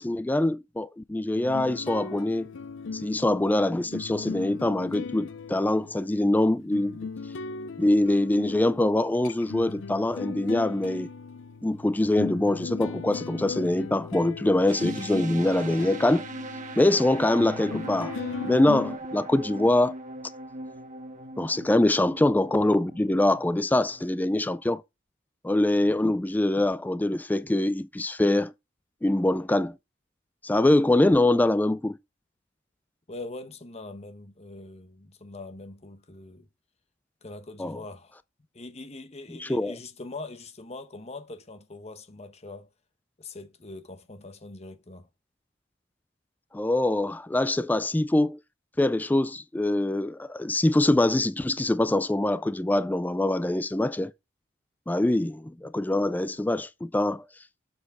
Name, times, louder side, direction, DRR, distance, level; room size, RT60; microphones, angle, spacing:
voice 1, 0.0-2.5 2.9-7.0 7.8-11.1 11.6-16.2 16.8-18.1 18.4-19.9 21.4-24.8 25.4-28.5 29.0-29.7 30.4-32.0 37.6-37.8 39.4-39.7 46.5-48.4 48.8-54.1 54.9-57.2, left 1 dB, 10° left, 0.3 m, -24 dB
sound 1, 1.4-19.0, left 4 dB, 65° left, 0.5 m, -38 dB
sound 2, 14.7-24.5, right 2 dB, 40° right, 1.3 m, -40 dB
voice 2, 33.1-36.5 37.2-38.2 38.5-42.7 43.2-45.1, left 2 dB, 35° left, 1.1 m, -42 dB
7.2 x 6.3 x 3.5 m
head